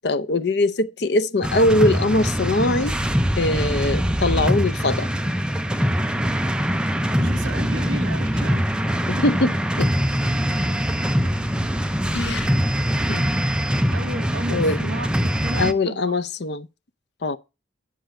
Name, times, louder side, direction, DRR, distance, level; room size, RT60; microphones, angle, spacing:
voice 1, 0.0-3.0 3.4-5.1 9.1-9.5 9.8-9.9 12.1-12.5 13.1-13.3 14.5-14.9 15.6-16.7 17.2-17.4, left 2 dB, 55° left, 0.6 m, -22 dB
sound 1, 1.4-15.7, equal, 5° right, 0.5 m, -23 dB
voice 2, 7.2-8.7 13.9-16.1, right 2 dB, 75° right, 1.1 m, -33 dB
10.5 x 6.3 x 4.3 m
head